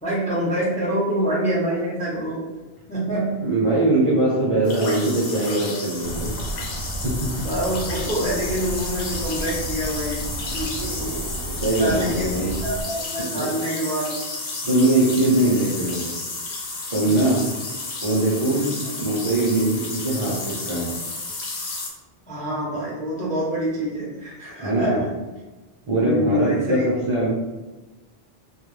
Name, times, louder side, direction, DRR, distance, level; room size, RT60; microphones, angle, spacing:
voice 1, 0.0-2.5 2.9-3.4 7.3-11.2 11.8-14.2 17.0-17.4 18.4-18.8 22.3-25.0 26.0-26.9, equal, 10° left, -6 dB, 0.5 m, -26 dB
voice 2, 3.4-6.3 7.0-7.3 10.8-12.5 13.3-13.5 14.6-16.1 16.9-17.4 18.0-18.6 19.0-20.9 24.6-25.0 25.9-27.3, right 2 dB, 40° right, -7 dB, 0.6 m, -22 dB
sound 1, 4.6-21.9, left 3 dB, 85° left, 0.9 m, -32 dB
sound 2, 6.0-12.8, right 1 dB, 85° right, 0.8 m, -32 dB
2.3 x 2.1 x 3.1 m, 1.2 s
omnidirectional pair, 1.1 m